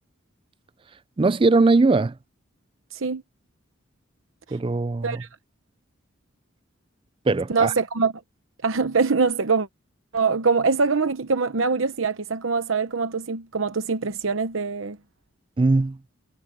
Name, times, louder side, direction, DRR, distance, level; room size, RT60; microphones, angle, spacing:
voice 1, 1.2-2.2 4.5-5.2 7.3-7.7 15.6-16.0, right 3 dB, 25° right, 0.4 m, -20 dB
voice 2, 2.9-3.2 5.0-5.3 7.5-8.1 8.6-9.7 10.1-15.0, right 4 dB, 75° right, 0.9 m, -23 dB
head